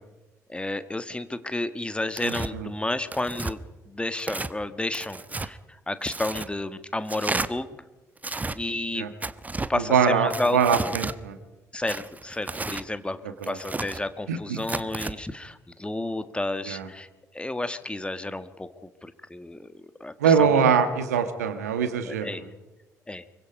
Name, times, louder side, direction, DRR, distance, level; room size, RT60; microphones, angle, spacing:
voice 1, 0.5-3.6 3.9-7.7 8.5-9.1 9.7-10.9 11.7-17.1 17.3-20.5 22.1-22.5 23.1-23.2, left 2 dB, 10° left, 11 dB, 1.6 m, -31 dB
Tearing, 2.1-2.5 3.1-3.5 4.2-4.5 4.9-5.5 6.0-6.5 7.1-7.5 8.2-8.6 9.2-9.7 10.3-11.2 11.9-12.9 13.4-14.0 14.6-15.1, right 3 dB, 20° right, 1.1 m, -32 dB
voice 2, 9.9-11.4 13.4-13.6 14.3-14.6 16.7-16.9 20.2-22.3, right 6 dB, 75° right, 10 dB, 1.7 m, -22 dB
25.0 x 23.5 x 5.4 m, 1.1 s
figure-of-eight pair, 45°, 9 cm